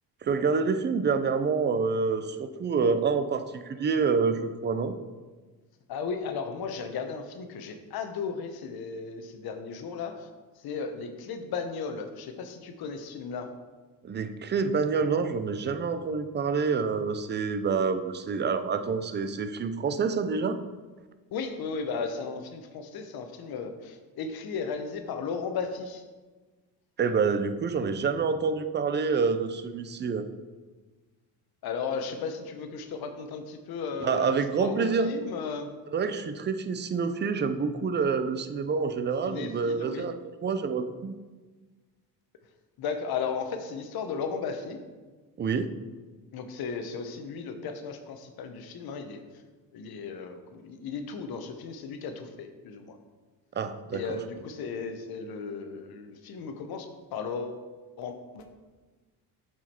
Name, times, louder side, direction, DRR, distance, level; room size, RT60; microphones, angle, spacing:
voice 1, 0.2-4.9 14.0-20.6 27.0-30.2 34.0-35.1 35.9-41.1 45.4-45.7 53.5-54.2, right 5 dB, 25° right, 10 dB, 0.5 m, -27 dB
voice 2, 5.9-10.1 10.6-13.5 21.3-26.0 31.6-35.7 39.2-40.1 42.8-44.8 46.3-49.2 49.7-53.0 53.9-57.6 58.0-58.4, left 5 dB, 60° left, 7 dB, 1.0 m, -35 dB
7.5 x 4.9 x 4.4 m, 1.3 s
cardioid pair, 100°, 41 cm